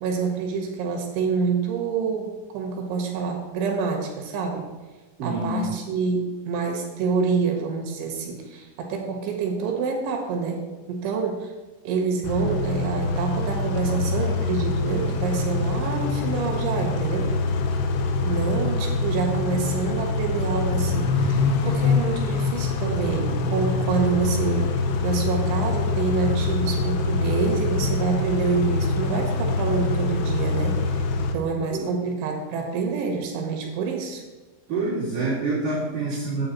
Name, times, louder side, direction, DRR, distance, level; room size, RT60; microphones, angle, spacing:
voice 1, 0.0-4.7 5.2-11.5 11.9-17.3 18.2-31.1 31.3-34.2 36.1-36.2, right 5 dB, 70° right, 2 dB, 3.8 m, -27 dB
voice 2, 5.2-5.7 31.7-31.9 34.7-36.5, right 2 dB, 50° right, -9 dB, 3.5 m, -26 dB
Car / Idling / Accelerating revving vroom, 12.2-31.3, left 3 dB, 85° left, 3.7 m, -25 dB
10.5 x 9.1 x 4.1 m, 1.3 s
omnidirectional pair, 5.9 m